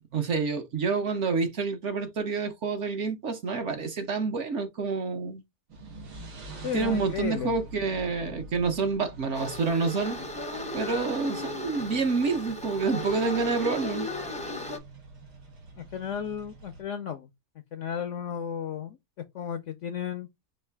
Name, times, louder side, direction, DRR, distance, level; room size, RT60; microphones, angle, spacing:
voice 1, 0.1-5.4 6.7-10.2 10.7-14.1, right 4 dB, 55° right, 1.0 m, -28 dB
sound 1, 5.7-16.8, right 2 dB, 90° right, 2.1 m, -46 dB
voice 2, 6.6-7.5 15.8-17.3 17.7-19.0 19.3-20.3, left 8 dB, 70° left, 0.7 m, -34 dB
sound 2, 9.3-14.8, left 2 dB, 10° left, 0.4 m, -36 dB
5.5 x 2.4 x 3.3 m
omnidirectional pair, 1.7 m